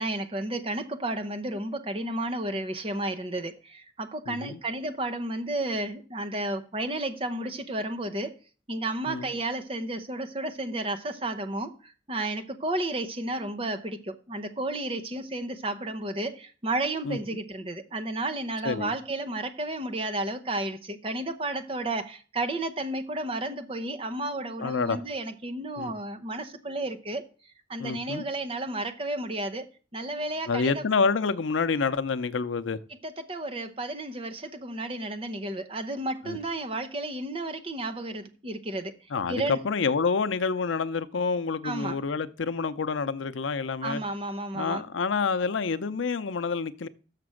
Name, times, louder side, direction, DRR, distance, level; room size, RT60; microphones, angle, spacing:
voice 1, 0.0-8.3 8.7-27.2 27.7-29.7 29.9-30.8 33.0-38.9 39.3-39.6 41.6-42.0 43.8-44.8, right 2 dB, 30° right, 0.7 m, -32 dB
voice 2, 4.3-4.6 9.1-9.3 17.0-17.2 18.6-18.9 24.6-25.0 25.8-25.9 27.8-28.2 30.5-32.8 36.2-36.4 39.1-44.0 44.5-46.9, left 4 dB, 90° left, 0.6 m, -28 dB
6.7 x 6.0 x 6.3 m
head